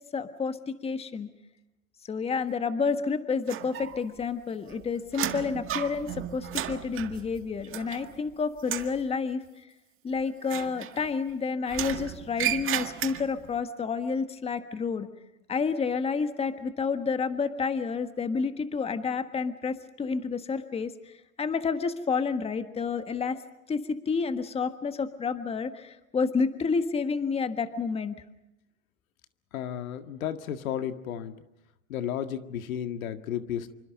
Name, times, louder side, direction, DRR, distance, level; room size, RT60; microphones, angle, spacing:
voice 1, 0.1-1.3 2.1-9.4 10.0-15.1 15.5-23.4 23.7-28.1, left 5 dB, 15° left, 10 dB, 1.5 m, -30 dB
sound 1, 3.5-4.2 4.5-8.3 8.6-9.0 10.4-11.3 11.7-13.5, right 12 dB, 30° right, 1.9 m, -34 dB
voice 2, 29.5-31.4 31.9-33.7, left 9 dB, 80° left, 9 dB, 2.0 m, -33 dB
27.0 x 25.0 x 5.2 m, 0.93 s
hypercardioid pair, 125°, 41 cm